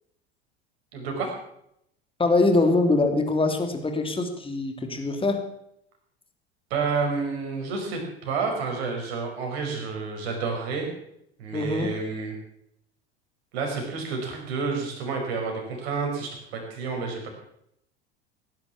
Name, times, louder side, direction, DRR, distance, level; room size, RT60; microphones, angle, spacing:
voice 1, 0.9-1.3 6.7-10.9 11.4-12.3 13.5-17.3, right 4 dB, 65° right, 2 dB, 5.7 m, -29 dB
voice 2, 2.2-5.4 11.5-11.9, left 2 dB, 15° left, 5 dB, 3.1 m, -23 dB
18.0 x 11.0 x 7.2 m, 0.74 s
figure-of-eight pair, 75°, 33 cm